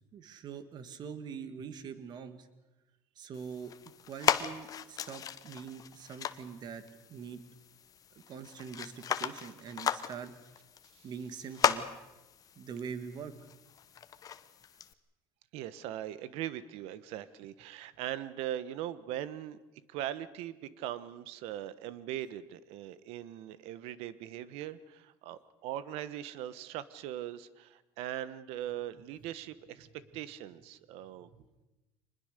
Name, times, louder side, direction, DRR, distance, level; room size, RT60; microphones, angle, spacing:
voice 1, 0.1-2.5 3.2-3.7 4.1-6.8 7.1-7.4 8.3-10.3 11.0-11.9 12.6-13.5 31.4-31.5, right 6 dB, 45° right, 11 dB, 1.9 m, -43 dB
sound 1, 3.3-14.9, left 8 dB, 35° left, 1.0 m, -36 dB
voice 2, 15.5-19.6 19.9-29.9 30.1-31.3, right 12 dB, 70° right, 15 dB, 1.2 m, -40 dB
25.0 x 20.5 x 6.7 m, 1.0 s
cardioid pair, 130°, 10 cm